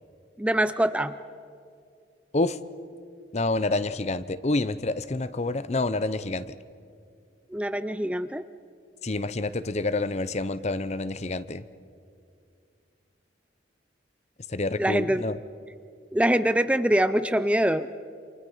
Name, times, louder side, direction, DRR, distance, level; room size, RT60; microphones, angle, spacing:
voice 1, 0.4-1.2 7.5-8.4 14.8-15.2 16.1-17.9, right 1 dB, 5° right, 12 dB, 0.5 m, -24 dB
voice 2, 3.3-6.5 9.0-11.7 14.5-15.4, left 2 dB, 40° left, 15 dB, 0.7 m, -28 dB
29.0 x 27.0 x 5.6 m, 2.4 s
head